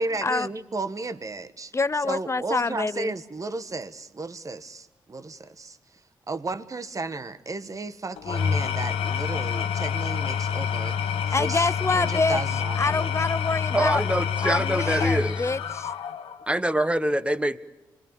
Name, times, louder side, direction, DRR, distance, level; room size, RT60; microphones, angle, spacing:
voice 1, 0.0-1.7 2.0-5.8 6.3-11.7 11.9-13.1, right 3 dB, 40° right, 11 dB, 1.3 m, -33 dB
voice 2, 1.7-3.1 11.3-12.4 12.8-14.0 14.4-15.9, left 3 dB, 30° left, 17 dB, 0.8 m, -26 dB
Engine / Tools, 8.2-16.5, left 7 dB, 85° left, 1.2 m, -27 dB
voice 3, 13.7-15.5 16.5-17.6, right 1 dB, 10° right, 11 dB, 1.5 m, -25 dB
26.5 x 21.5 x 7.1 m, 1.1 s
supercardioid pair, 45°, 9 cm